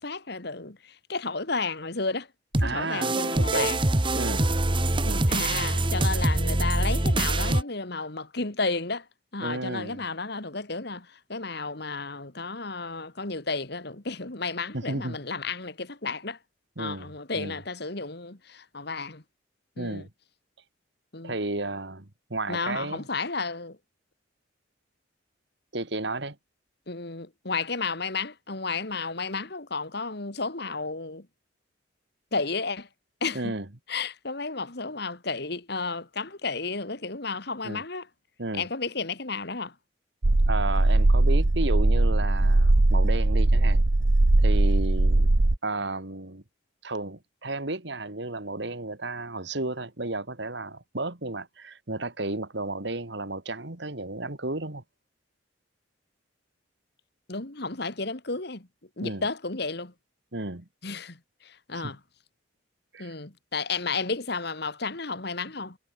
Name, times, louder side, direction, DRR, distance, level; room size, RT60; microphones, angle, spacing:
voice 1, 0.0-2.3 2.6-3.8 5.3-9.1 9.3-16.4 16.8-19.2 19.8-20.1 21.1-21.4 22.5-23.8 26.9-31.3 32.3-32.9 33.2-33.5 33.9-38.1 38.5-39.8 57.3-58.7 59.0-59.9 60.8-62.0 63.0-65.8, left 4 dB, 55° left, 2.1 m, -32 dB
sound 1, 2.5-7.6, right 2 dB, 25° right, 1.4 m, -24 dB
voice 2, 2.6-3.7 4.1-4.5 5.0-5.3 9.4-10.0 14.7-15.2 16.8-17.6 19.8-20.1 21.2-23.0 25.7-26.4 33.3-33.7 37.6-37.8 38.4-38.7 40.5-43.8 44.4-45.3 45.6-46.4 46.8-54.8 59.0-59.2 60.3-60.7 61.8-61.9 62.9-63.1, right 2 dB, 60° right, 2.1 m, -33 dB
sound 2, 40.2-45.6, right 2 dB, 80° right, 1.2 m, -20 dB
head